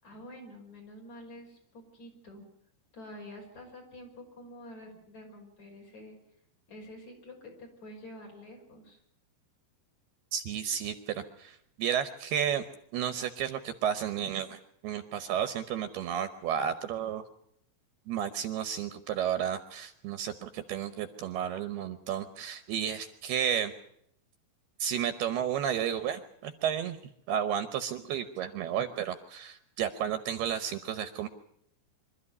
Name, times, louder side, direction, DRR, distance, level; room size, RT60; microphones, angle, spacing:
voice 1, 0.0-2.4 2.9-6.2 6.7-9.0, left 1 dB, 40° left, 0 dB, 6.7 m, -48 dB
voice 2, 10.3-12.6 12.9-17.2 18.1-23.7 24.8-27.0 27.3-31.3, right 9 dB, 75° right, 10 dB, 2.7 m, -32 dB
25.5 x 13.5 x 9.7 m, 0.72 s
omnidirectional pair, 5.1 m